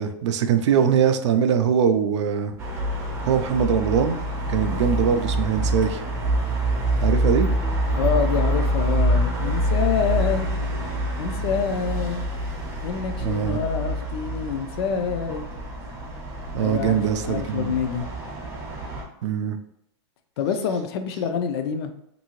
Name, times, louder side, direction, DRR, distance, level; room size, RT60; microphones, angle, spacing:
voice 1, 0.0-2.6 3.2-4.2 4.5-6.0 7.0-7.5 13.2-13.6 16.5-17.7 19.2-19.6, right 7 dB, 80° right, 8 dB, 0.4 m, -22 dB
sound 1, 2.6-19.0, right 1 dB, 15° right, 0.6 m, -26 dB
voice 2, 8.0-10.5 11.2-12.3 12.8-15.5 16.6-18.1 20.4-21.9, left 6 dB, 60° left, 8 dB, 0.4 m, -26 dB
2.7 x 2.6 x 2.9 m, 0.79 s
supercardioid pair, 150°, 15 cm